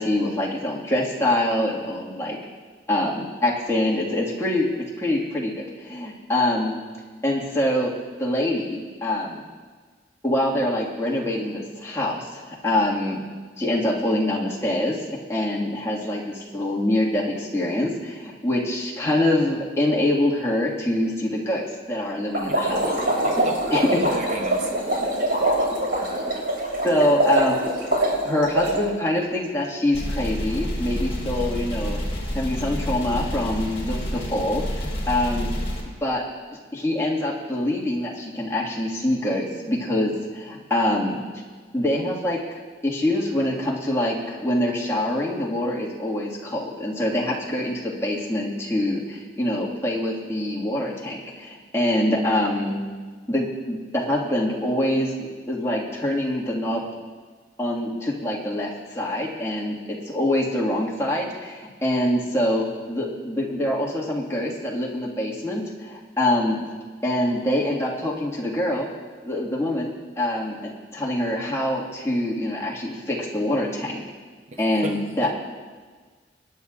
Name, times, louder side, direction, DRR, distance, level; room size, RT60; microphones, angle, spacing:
voice 1, 0.0-2.4 2.9-6.8 7.2-7.9 8.2-9.4 10.2-13.2 13.6-15.0 15.3-21.6 21.9-22.9 23.7-23.8 26.8-27.7 28.2-32.0 32.3-35.5 36.0-36.2 36.7-41.2 41.7-42.4 42.8-52.7 53.3-56.8 57.6-66.6 67.0-68.9 69.2-74.0 74.6-75.3, left 1 dB, 15° left, -5 dB, 1.7 m, -25 dB
sound 1, 22.3-28.8, right 1 dB, 75° right, 3.5 m, -23 dB
voice 2, 23.1-23.7 24.0-24.7 74.5-75.3, right 1 dB, 40° right, 3 dB, 0.7 m, -34 dB
sound 2, 29.9-35.8, equal, 35° left, 2.7 m, -29 dB
25.5 x 10.5 x 2.5 m, 1.5 s
head